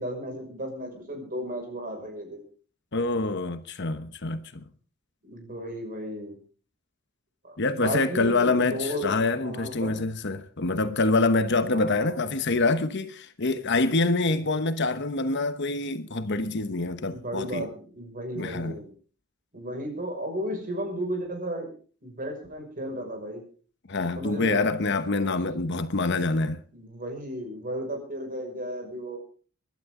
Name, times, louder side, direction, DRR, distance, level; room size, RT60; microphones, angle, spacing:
voice 1, 0.0-2.4 5.2-6.4 7.4-9.1 9.4-10.0 11.7-12.3 17.1-18.9 19.5-21.7 22.0-23.4 24.2-24.6 26.7-29.2, equal, 40° right, 5.9 m, -34 dB
voice 2, 2.9-4.6 7.6-17.7 18.3-18.8 23.9-26.6, left 3 dB, 55° left, 1.1 m, -26 dB
24.0 x 11.5 x 3.8 m
head